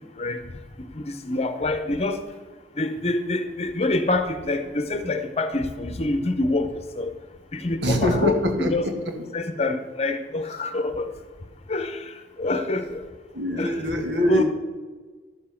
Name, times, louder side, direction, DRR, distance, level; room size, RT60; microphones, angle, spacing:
voice 1, 0.8-2.2 2.8-7.1 7.5-8.9 9.3-11.1 11.7-13.0 13.6-13.8 14.2-14.4, left 2 dB, 35° left, 8 dB, 0.9 m, -26 dB
voice 2, 7.8-8.9 13.3-14.4, left 1 dB, 75° right, 3 dB, 2.0 m, -24 dB
11.5 x 7.4 x 5.8 m, 1.4 s
head